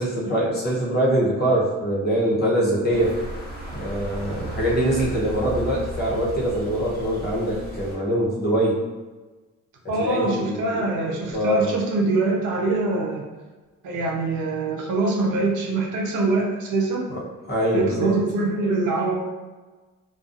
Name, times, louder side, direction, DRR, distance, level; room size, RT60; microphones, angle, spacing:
voice 1, 0.0-3.1 3.7-8.8 10.0-10.8 11.3-11.7 17.1-17.2 17.5-18.1, right 1 dB, 35° left, -5 dB, 0.9 m, -23 dB
sound 1, 2.9-7.9, equal, 30° right, 1.0 m, -35 dB
voice 2, 9.9-13.3 13.8-17.1 17.7-19.1, right 3 dB, 85° right, -1 dB, 0.6 m, -24 dB
2.4 x 2.2 x 2.5 m, 1.2 s
cardioid pair, 90°, 30 cm